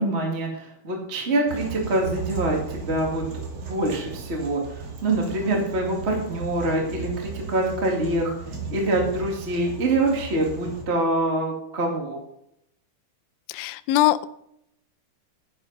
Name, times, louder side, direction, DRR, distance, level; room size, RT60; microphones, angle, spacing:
voice 1, 0.0-3.2 3.6-8.3 8.7-12.2, right 2 dB, 25° right, 0 dB, 1.6 m, -25 dB
sound 1, 1.5-10.8, right 5 dB, 45° right, 2.8 m, -36 dB
voice 2, 13.5-14.3, left 15 dB, 80° left, 13 dB, 2.3 m, -21 dB
11.0 x 10.5 x 4.1 m, 0.76 s
omnidirectional pair, 4.6 m